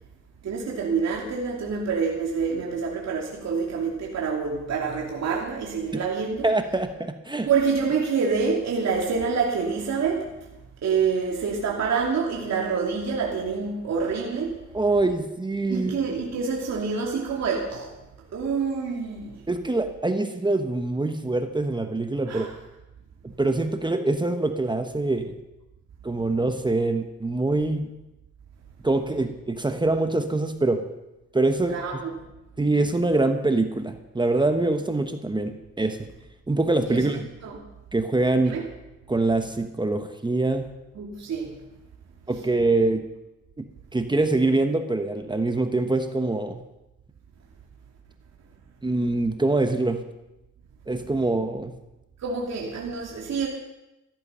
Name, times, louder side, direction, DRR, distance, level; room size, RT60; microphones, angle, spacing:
voice 1, 0.4-6.5 7.5-10.3 10.8-14.6 15.7-17.9 18.3-19.4 22.3-22.5 31.7-32.1 36.9-37.0 37.4-37.6 38.4-38.6 40.9-41.5 52.2-53.5, right 5 dB, 60° right, -2 dB, 2.8 m, -27 dB
voice 2, 6.4-7.5 14.7-15.9 19.5-22.5 23.2-25.4 26.0-27.9 28.8-30.8 31.3-32.0 32.6-36.0 36.5-37.3 37.9-38.6 39.1-40.7 42.3-43.0 43.6-43.7 43.9-46.6 48.8-50.0 50.9-51.7, right 2 dB, 15° right, 7 dB, 1.2 m, -24 dB
14.0 x 14.0 x 5.7 m, 0.95 s
cardioid pair, 90°, 30 cm